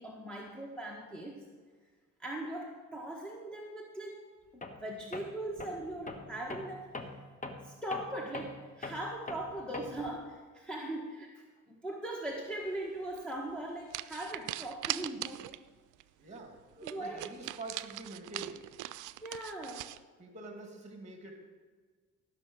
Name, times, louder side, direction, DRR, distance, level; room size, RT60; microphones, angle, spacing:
voice 1, 0.0-1.5 2.2-4.3 4.5-6.9 7.6-15.4 16.8-17.3 19.2-19.8, right 1 dB, 5° left, -3 dB, 1.7 m, -40 dB
Tools, 4.6-4.9 5.1-10.2, left 2 dB, 25° left, 1.2 m, -43 dB
sound 1, 13.1-13.3 13.9-15.7 16.0-16.1 16.4-16.5 16.8-20.0, right 16 dB, 80° right, 0.5 m, -40 dB
voice 2, 16.2-18.6 20.2-21.5, right 2 dB, 25° right, 3 dB, 2.4 m, -46 dB
15.0 x 6.3 x 6.4 m, 1.5 s
cardioid pair, 90°, 30 cm